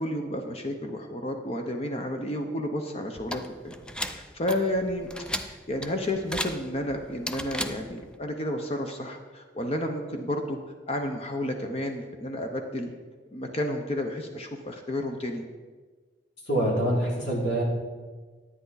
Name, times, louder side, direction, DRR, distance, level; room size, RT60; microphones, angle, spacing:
voice 1, 0.0-3.7 4.0-5.1 5.5-10.6 10.9-12.9 13.3-15.4, left 1 dB, 35° left, 4 dB, 0.8 m, -31 dB
sound 1, 3.2-8.2, left 1 dB, 5° left, 0.4 m, -36 dB
voice 2, 16.5-17.6, right 1 dB, 75° left, -3 dB, 3.1 m, -25 dB
10.5 x 9.5 x 4.0 m, 1.4 s
head